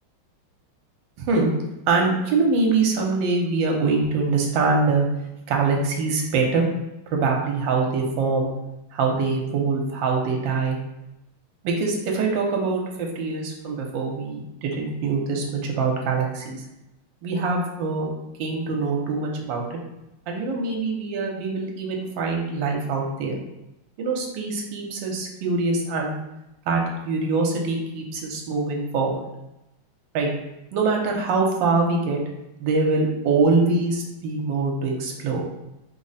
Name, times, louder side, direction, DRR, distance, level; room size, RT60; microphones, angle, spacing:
voice 1, 1.2-1.5 1.9-5.1 5.5-6.7 7.1-8.5 8.9-10.8 11.6-16.6 17.2-18.1 18.4-19.8 20.3-23.3 24.0-26.2 26.7-29.1 30.1-30.3 30.7-32.2 32.6-35.4, right 4 dB, 70° right, 0 dB, 1.3 m, -24 dB
3.6 x 2.1 x 4.0 m, 0.90 s
omnidirectional pair, 2.3 m